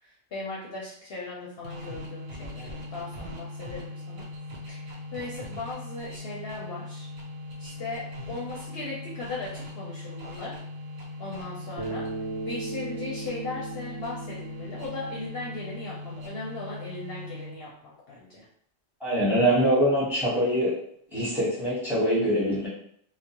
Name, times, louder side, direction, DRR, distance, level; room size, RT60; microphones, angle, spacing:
voice 1, 0.0-4.2 4.7-7.1 7.6-10.5 11.2-12.1 12.4-18.5, left 2 dB, 65° left, -5 dB, 0.7 m, -38 dB
sound 1, 1.6-17.8, left 2 dB, 55° right, 0.5 m, -40 dB
Bass guitar, 11.8-16.1, right 3 dB, 75° right, 0.9 m, -38 dB
voice 2, 19.0-20.8 21.1-22.7, equal, ahead, -8 dB, 0.9 m, -23 dB
2.3 x 2.0 x 2.8 m, 0.65 s
omnidirectional pair, 1.2 m